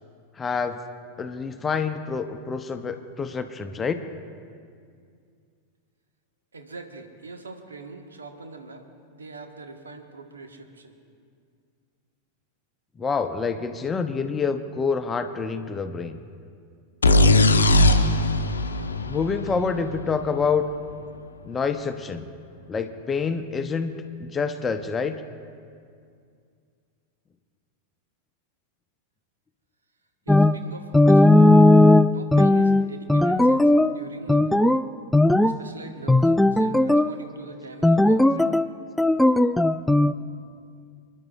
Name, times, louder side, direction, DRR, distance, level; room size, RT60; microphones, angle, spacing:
voice 1, 0.4-0.8 1.2-4.0 13.0-16.2 19.1-20.7 21.4-22.3 22.7-23.9 24.2-25.2, left 5 dB, 20° left, 8 dB, 0.7 m, -27 dB
voice 2, 6.5-8.8 9.1-10.9 30.3-31.6 32.1-34.4 35.4-38.5, right 3 dB, 75° right, 5 dB, 1.4 m, -42 dB
sound 1, 17.0-20.7, left 2 dB, 75° left, 0.8 m, -20 dB
sound 2, 30.3-30.6 30.9-34.0 34.3-34.8 35.1-35.6 36.1-37.1 37.8-38.7 39.0-40.1, left 1 dB, 5° left, 0.3 m, -17 dB
29.0 x 11.0 x 2.5 m, 2.3 s
figure-of-eight pair, 90°, 0 cm